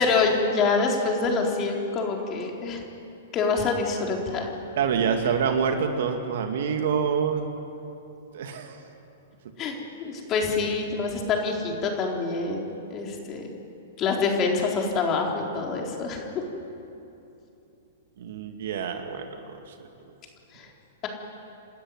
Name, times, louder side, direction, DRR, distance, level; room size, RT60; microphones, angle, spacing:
voice 1, 0.0-2.8 3.3-4.5 9.6-13.4 14.0-16.4 20.5-20.7, left 4 dB, 30° left, 1 dB, 4.1 m, -26 dB
voice 2, 4.8-7.4 8.3-8.9 18.2-19.9, right 6 dB, 65° right, 5 dB, 2.5 m, -27 dB
28.0 x 13.0 x 9.9 m, 2.8 s
hypercardioid pair, 115°, 0 cm